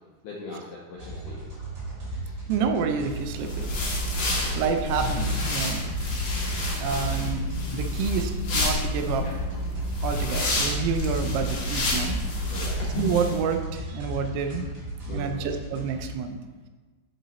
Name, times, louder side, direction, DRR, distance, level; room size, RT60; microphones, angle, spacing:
voice 1, 0.2-1.4 4.2-4.6 12.5-12.9 15.1-15.4, left 3 dB, 85° left, -2 dB, 1.8 m, -40 dB
sound 1, 1.0-16.1, right 1 dB, 35° right, 2.8 m, -37 dB
voice 2, 2.5-3.7 4.2-5.9 6.5-6.6 6.8-7.5 7.7-9.3 10.0-12.2 13.0-14.7 15.1-16.4, right 6 dB, 85° right, 6 dB, 2.7 m, -28 dB
sound 2, 3.2-13.4, left 1 dB, 60° left, 1.2 m, -28 dB
10.5 x 4.1 x 4.1 m, 1.3 s
omnidirectional pair, 4.6 m